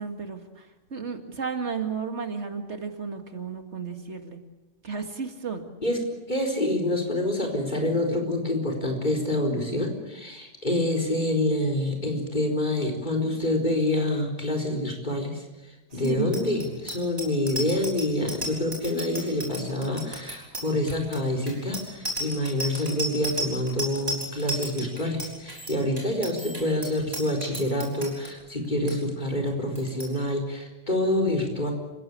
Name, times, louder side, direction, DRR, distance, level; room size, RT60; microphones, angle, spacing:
voice 1, 0.0-4.4 4.8-5.7 15.9-16.5, right 5 dB, 70° right, 6 dB, 2.4 m, -33 dB
voice 2, 6.3-31.7, left 1 dB, 40° left, 3 dB, 4.6 m, -27 dB
Bicycle bell, 16.0-28.3 28.6-28.9 29.2-29.5 29.7-30.1, right 1 dB, 20° right, 6.2 m, -34 dB
28.0 x 16.5 x 8.7 m, 1.1 s
omnidirectional pair, 1.2 m